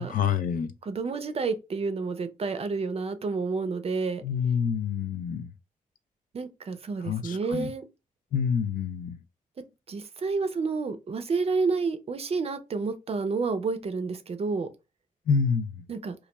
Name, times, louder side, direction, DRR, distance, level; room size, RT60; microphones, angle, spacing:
voice 1, 0.0-0.7 4.2-5.5 7.1-7.7 8.3-9.2 15.3-15.8, left 6 dB, 70° left, 0.4 m, -27 dB
voice 2, 0.8-4.2 6.3-7.8 9.9-14.7 15.9-16.1, right 4 dB, 45° right, 0.5 m, -29 dB
2.3 x 2.2 x 2.9 m
cardioid pair, 60°, 15 cm